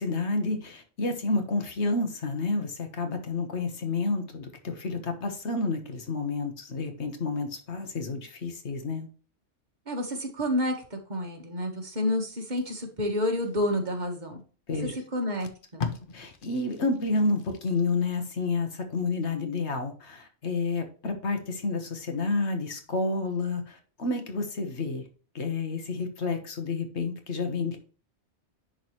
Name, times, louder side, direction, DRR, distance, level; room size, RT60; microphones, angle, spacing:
voice 1, 0.0-9.1 14.7-14.9 16.1-25.0 25.3-27.8, left 3 dB, 70° left, 1.5 m, -30 dB
voice 2, 9.9-14.4 15.1-15.8, left 1 dB, 40° right, 1.6 m, -29 dB
Packing tape duct tape, 12.4-14.1 14.8-14.9 15.2-18.2 18.6-18.8, left 5 dB, 50° left, 0.9 m, -40 dB
10.5 x 4.0 x 3.1 m
omnidirectional pair, 1.2 m